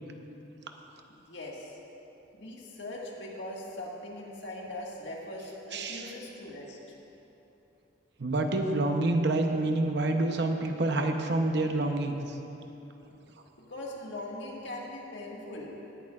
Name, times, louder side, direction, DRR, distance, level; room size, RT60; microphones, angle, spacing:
voice 1, 1.1-1.8 2.3-7.0 13.7-15.7, left 1 dB, 75° left, -3 dB, 1.8 m, -41 dB
voice 2, 5.7-6.1 8.2-12.4, right 2 dB, 65° right, 4 dB, 0.8 m, -27 dB
18.5 x 10.5 x 2.5 m, 2.9 s
head